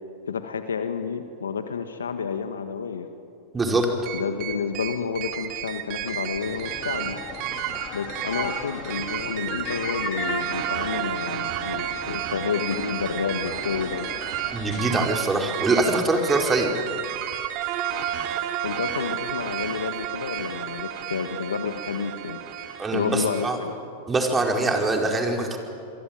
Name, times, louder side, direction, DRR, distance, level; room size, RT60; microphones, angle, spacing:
voice 1, 0.3-3.1 4.1-7.2 7.9-14.1 18.6-22.4 22.9-23.8, left 6 dB, 85° left, 8 dB, 1.6 m, -30 dB
voice 2, 3.5-3.9 14.5-16.7 22.8-23.6 24.1-25.6, right 2 dB, 15° right, 2 dB, 4.9 m, -23 dB
sound 1, 4.1-23.5, right 11 dB, 50° right, 2.5 m, -31 dB
sound 2, 6.4-14.9, left 8 dB, 40° left, 2.9 m, -38 dB
28.0 x 23.0 x 9.1 m, 2.6 s
hypercardioid pair, 100°, 0 cm